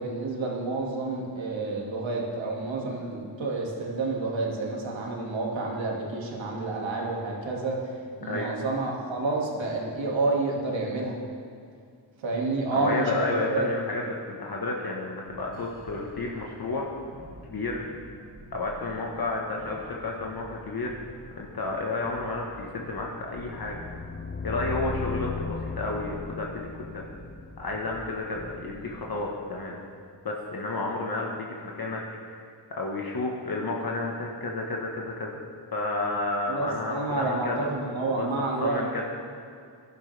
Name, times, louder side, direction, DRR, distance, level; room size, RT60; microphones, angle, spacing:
voice 1, 0.0-7.8 8.2-11.2 12.2-13.7 36.5-39.0, right 3 dB, 80° right, -2 dB, 2.2 m, -29 dB
voice 2, 12.7-16.9 17.5-17.8 18.5-21.0 21.4-23.8 24.4-27.0 27.6-29.8 30.2-32.0 32.3-35.4 35.7-37.7 38.1-38.3 38.6-39.0, left 2 dB, 50° left, -2 dB, 1.4 m, -31 dB
sound 1, 15.3-29.2, right 1 dB, 60° right, 3.1 m, -48 dB
sound 2, 23.4-28.4, left 5 dB, 25° left, 0.3 m, -36 dB
15.5 x 11.5 x 3.4 m, 2.3 s
wide cardioid pair, 90°, 45 cm